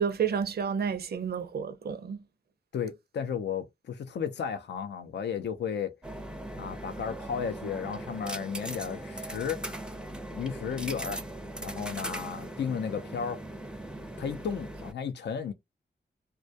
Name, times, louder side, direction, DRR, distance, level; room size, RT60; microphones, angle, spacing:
voice 1, 0.0-2.2, right 7 dB, 60° right, 0.5 m, -30 dB
voice 2, 2.7-6.0 6.6-9.7 10.3-11.2 11.6-13.4 14.2-15.5, left 7 dB, 75° left, 0.4 m, -34 dB
sound 1, 6.0-14.9, right 1 dB, 5° right, 0.4 m, -39 dB
2.2 x 2.2 x 2.6 m
wide cardioid pair, 90°, 18 cm